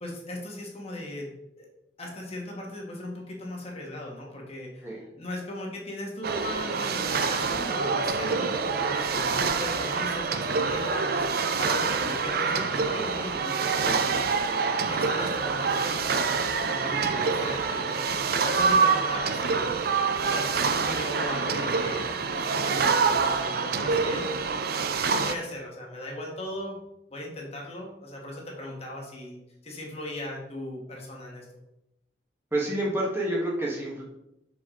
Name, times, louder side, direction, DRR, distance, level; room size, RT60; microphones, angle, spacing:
voice 1, 0.0-1.3 1.6-1.7 2.0-4.9 5.2-14.0 14.9-16.4 16.7-19.7 20.2-22.1 22.3-24.2 25.1-26.8 27.1-31.4, left 1 dB, 35° left, -1 dB, 1.3 m, -38 dB
sound 1, 6.2-25.4, right 5 dB, 55° right, 0.4 m, -26 dB
voice 2, 13.7-14.2 16.8-17.4 32.5-34.0, right 1 dB, 15° right, -4 dB, 1.3 m, -30 dB
5.8 x 5.0 x 3.7 m, 0.86 s
head